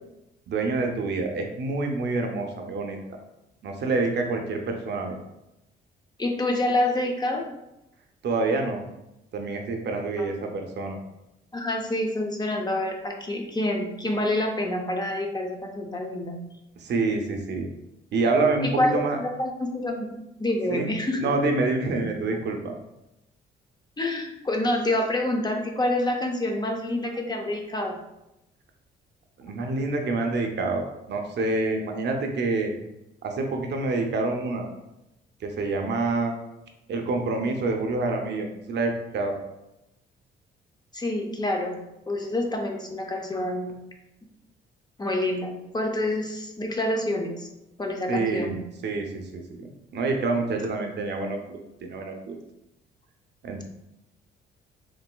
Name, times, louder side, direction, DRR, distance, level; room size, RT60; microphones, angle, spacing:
voice 1, 0.5-3.0 3.6-5.2 8.2-8.8 9.3-11.0 16.8-17.7 18.1-19.2 20.7-20.9 21.2-22.7 29.4-32.7 33.2-34.7 35.4-36.4 36.9-39.4 48.1-52.4 53.4-53.6, right 3 dB, 60° right, 3 dB, 0.6 m, -27 dB
voice 2, 6.2-7.5 10.2-10.3 11.5-16.4 18.6-20.1 20.4-21.3 24.0-28.0 40.9-41.8 42.1-43.7 45.0-47.5 47.8-48.5, left 1 dB, 20° left, 2 dB, 0.5 m, -27 dB
3.9 x 2.6 x 2.2 m, 0.88 s
cardioid pair, 90°, 20 cm